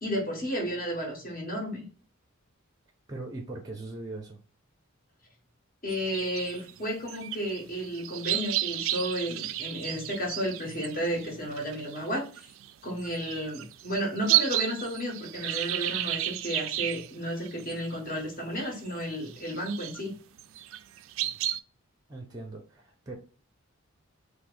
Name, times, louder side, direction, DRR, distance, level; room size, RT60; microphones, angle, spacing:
voice 1, 0.0-1.8 5.8-12.5 12.8-20.2, equal, 40° left, -1 dB, 1.5 m, -32 dB
voice 2, 3.1-4.4 22.1-23.2, right 2 dB, 15° right, 4 dB, 0.5 m, -40 dB
sound 1, 5.9-18.2 18.6-18.9 19.3-20.0 20.4-21.6, right 14 dB, 65° right, 0.3 m, -32 dB
5.9 x 2.1 x 2.5 m, 0.38 s
head